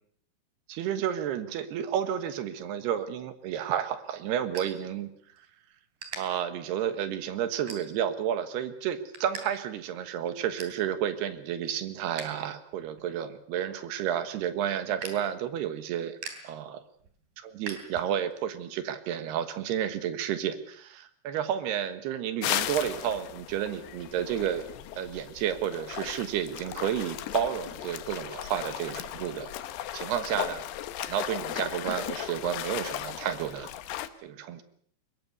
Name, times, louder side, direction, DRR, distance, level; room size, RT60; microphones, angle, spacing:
voice 1, 0.7-5.1 5.4-5.5 6.1-16.2 16.4-16.8 17.4-24.6 25.0-29.5 29.9-30.6 31.0-33.7 34.2-34.6, right 9 dB, 70° right, 10 dB, 3.0 m, -31 dB
sound 1, 3.4-5.5 6.0-6.2 6.8-7.0 7.7-8.2 8.6-9.4 9.7-9.8 10.2-10.8 11.3-12.4 12.7-18.4, right 5 dB, 50° right, 4.4 m, -44 dB
sound 2, 22.4-34.1, left 12 dB, 70° left, 2.7 m, -36 dB
23.5 x 21.0 x 6.9 m, 0.63 s
omnidirectional pair, 5.6 m